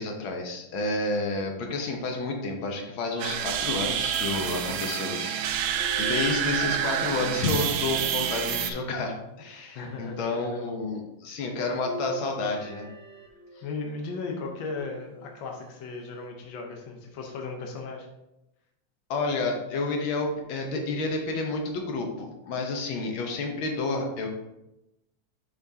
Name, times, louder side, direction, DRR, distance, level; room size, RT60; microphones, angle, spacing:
voice 1, 0.0-12.9 19.1-24.3, left 3 dB, 70° left, 2 dB, 1.2 m, -30 dB
sound 1, 3.2-8.7, right 9 dB, 90° right, 1.4 m, -28 dB
sound 2, 5.8-8.0 8.8-9.8 11.8-13.8 14.8-15.6 16.3-16.4 17.8-17.9, right 1 dB, 60° right, 2.1 m, -42 dB
voice 2, 9.7-10.7 13.6-18.1, left 3 dB, 85° left, 2 dB, 1.0 m, -36 dB
7.3 x 6.1 x 2.8 m, 0.90 s
omnidirectional pair, 3.4 m